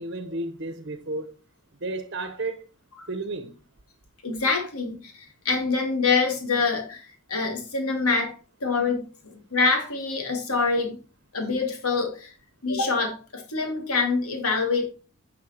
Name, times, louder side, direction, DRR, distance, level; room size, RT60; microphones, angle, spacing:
voice 1, 0.0-1.3 1.8-2.7 3.1-3.6, right 2 dB, 50° right, 1.0 m, -32 dB
voice 2, 4.2-8.3 8.6-11.0 11.3-12.3 12.6-14.9, left 4 dB, 90° left, 3.2 m, -25 dB
11.0 x 5.8 x 4.6 m
head